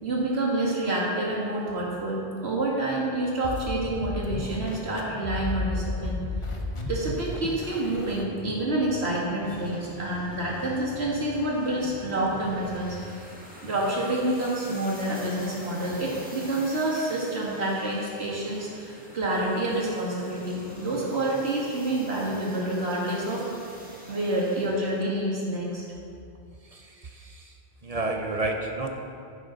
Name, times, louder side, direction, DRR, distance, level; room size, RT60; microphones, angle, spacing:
voice 1, 0.0-6.2 6.9-13.0 13.6-23.4 24.1-25.8, right 1 dB, 75° right, -5 dB, 2.3 m, -28 dB
sound 1, 3.4-13.1, left 3 dB, 30° left, 0.9 m, -36 dB
sound 2, 9.4-25.1, equal, 10° right, 1.7 m, -47 dB
voice 2, 26.7-27.5 27.8-28.9, right 2 dB, 40° right, 3 dB, 0.7 m, -31 dB
15.0 x 6.6 x 4.0 m, 2.6 s
omnidirectional pair, 1.1 m